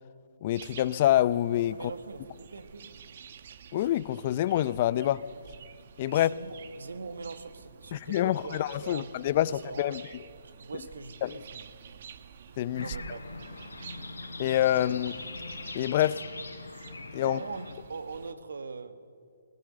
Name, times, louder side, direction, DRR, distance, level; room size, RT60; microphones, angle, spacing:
voice 1, 0.4-1.8 3.7-5.2 6.0-6.3 7.9-10.0 11.2-11.4 12.6-12.8 14.4-15.2 15.7-16.2 17.1-17.4, left 13 dB, 40° left, 0.5 m, -26 dB
sound 1, 0.5-18.3, right 7 dB, 55° right, 1.2 m, -49 dB
voice 2, 1.7-2.9 6.1-9.1 9.4-10.0 10.6-11.7 12.8-13.2 17.2-19.0, right 4 dB, 75° right, 1.5 m, -42 dB
sound 2, 12.7-17.7, left 3 dB, 85° left, 4.1 m, -42 dB
19.5 x 19.0 x 7.6 m
hypercardioid pair, 140°, 0 cm